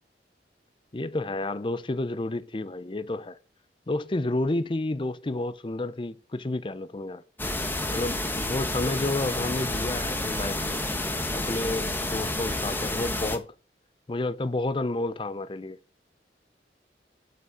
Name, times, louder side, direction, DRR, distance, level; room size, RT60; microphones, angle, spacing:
voice 1, 0.9-3.4 3.9-7.2 7.9-10.8 11.3-13.5 14.1-15.8, left 2 dB, 30° left, 0.5 m, -30 dB
sound 1, 7.4-13.4, left 1 dB, 10° left, 1.3 m, -30 dB
8.5 x 6.7 x 7.4 m
head